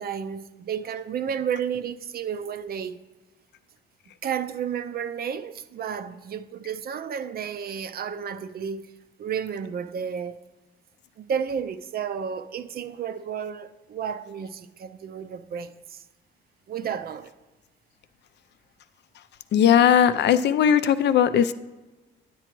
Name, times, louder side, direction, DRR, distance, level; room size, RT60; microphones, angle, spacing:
voice 1, 0.0-3.1 4.2-8.9 9.2-10.4 11.2-16.0 16.7-17.3, right 7 dB, 50° right, 0.4 m, -32 dB
voice 2, 19.5-21.5, left 9 dB, 60° left, 0.4 m, -18 dB
9.1 x 8.9 x 3.0 m
cardioid pair, 90°, 20 cm